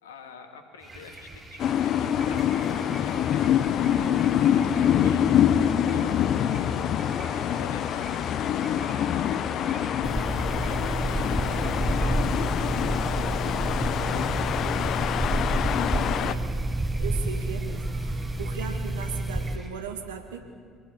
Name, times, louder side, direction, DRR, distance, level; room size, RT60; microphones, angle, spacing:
voice 1, 0.0-3.7 4.0-5.6 5.9-7.0 7.3-9.5 10.4-15.0, left 5 dB, 80° left, 6 dB, 2.4 m, -47 dB
sound 1, 0.8-19.7, right 2 dB, 30° right, 4.4 m, -46 dB
sound 2, 1.6-16.3, left 9 dB, 55° left, 1.0 m, -25 dB
sound 3, 10.0-19.6, right 2 dB, 15° right, 1.4 m, -29 dB
voice 2, 17.0-17.9 18.4-20.4, right 7 dB, 80° right, 6 dB, 2.2 m, -37 dB
25.0 x 22.0 x 7.3 m, 2.2 s
figure-of-eight pair, 55°, 0 cm